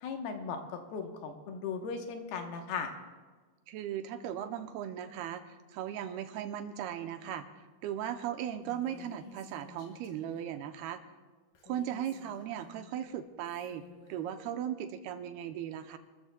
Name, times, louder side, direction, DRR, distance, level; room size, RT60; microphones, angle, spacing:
voice 1, 0.0-2.9, left 5 dB, 75° left, 4 dB, 2.9 m, -37 dB
voice 2, 3.7-11.0 11.6-16.0, right 10 dB, 85° right, 8 dB, 2.5 m, -38 dB
Female speech woman speaking, 8.6-10.5 11.6-13.0 13.4-14.4, left 5 dB, 60° left, 3.3 m, -55 dB
27.5 x 13.5 x 2.2 m, 1.4 s
omnidirectional pair, 4.6 m